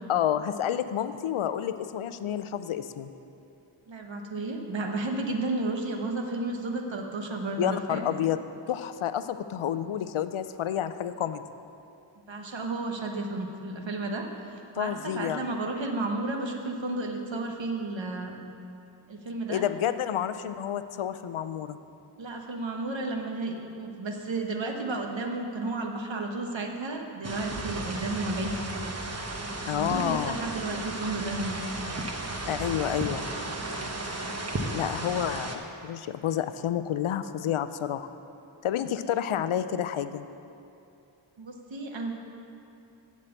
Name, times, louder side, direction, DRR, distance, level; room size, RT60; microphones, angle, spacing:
voice 1, 0.1-3.1 7.6-8.4 8.7-11.4 14.8-15.4 19.5-21.8 29.6-30.4 32.5-33.2 34.7-38.1 38.6-40.2, left 10 dB, 85° left, 12 dB, 0.6 m, -29 dB
voice 2, 3.9-8.0 12.3-14.3 14.5-18.3 19.1-19.6 22.2-29.0 29.7-31.6 41.4-42.2, right 2 dB, 65° right, 3 dB, 1.2 m, -32 dB
sound 1, 27.2-35.6, right 2 dB, 30° right, 1.0 m, -34 dB
7.6 x 7.4 x 8.1 m, 2.7 s
wide cardioid pair, 80°, 48 cm